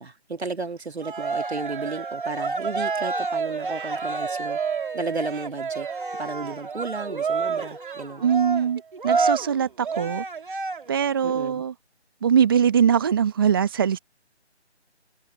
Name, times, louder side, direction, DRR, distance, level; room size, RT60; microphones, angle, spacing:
voice 1, 0.0-4.6 4.9-5.9 6.2-8.2 11.2-11.6, right 3 dB, 65° right, 2.8 m, -33 dB
Cheering, 1.0-11.1, right 4 dB, 45° right, 2.3 m, -29 dB
voice 2, 8.2-10.2 10.9-11.7 12.2-14.0, right 8 dB, 20° right, 1.5 m, -22 dB
figure-of-eight pair, 160°, 35 cm